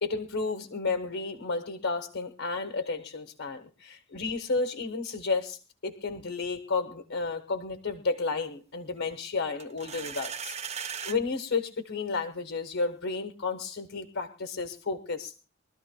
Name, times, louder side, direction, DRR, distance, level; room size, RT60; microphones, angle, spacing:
voice 1, 0.0-15.5, left 4 dB, 65° left, 6 dB, 1.4 m, -32 dB
sound 1, 9.6-11.2, right 7 dB, 30° right, 0.7 m, -37 dB
24.0 x 13.5 x 2.3 m, 0.33 s
head